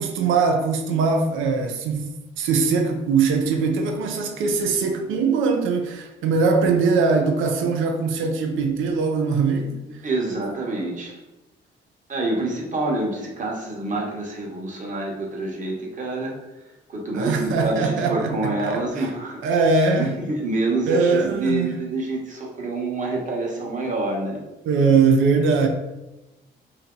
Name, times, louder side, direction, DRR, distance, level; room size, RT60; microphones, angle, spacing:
voice 1, 0.0-2.1 2.4-9.8 17.1-19.1 19.4-20.2 20.9-21.7 23.6-23.7 24.7-25.7, right 4 dB, 85° right, 4 dB, 0.5 m, -21 dB
voice 2, 10.0-11.2 12.1-16.3 16.9-19.6 19.9-24.4, right 2 dB, 40° right, -1 dB, 1.0 m, -27 dB
2.8 x 2.7 x 3.7 m, 1.0 s
cardioid pair, 90°, 20 cm